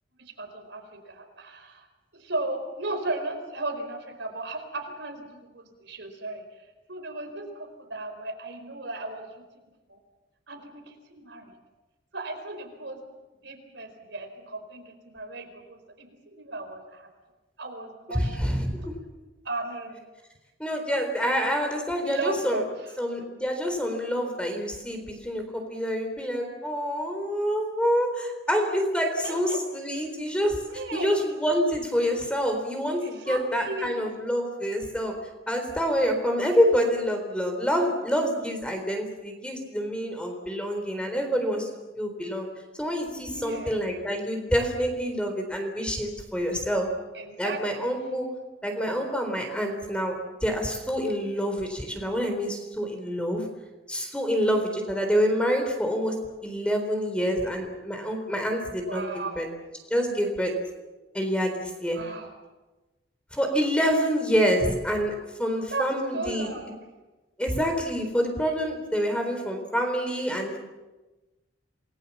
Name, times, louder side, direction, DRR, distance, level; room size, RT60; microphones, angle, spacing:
voice 1, 0.1-1.9 2.1-6.4 6.9-9.4 9.9-10.0 10.5-11.5 12.1-13.0 13.4-17.1 17.6-18.5 19.4-20.1 22.0-22.7 29.2-29.6 30.7-31.2 33.0-33.4 33.7-34.0 43.3-43.8 47.1-47.9 58.9-59.5 61.9-62.3 65.7-66.8, right 2 dB, 70° right, 5 dB, 4.5 m, -36 dB
voice 2, 18.1-18.9 20.6-22.6 23.0-25.4 25.7-30.6 30.9-35.2 35.5-41.7 42.0-42.5 42.8-46.9 47.4-48.3 48.6-50.1 50.4-53.5 53.9-56.1 56.4-59.0 59.4-59.5 59.9-60.5 61.1-62.0 63.3-65.1 65.4-66.5 67.4-70.6, equal, 5° left, 4 dB, 3.9 m, -27 dB
28.0 x 21.0 x 7.3 m, 1.1 s
head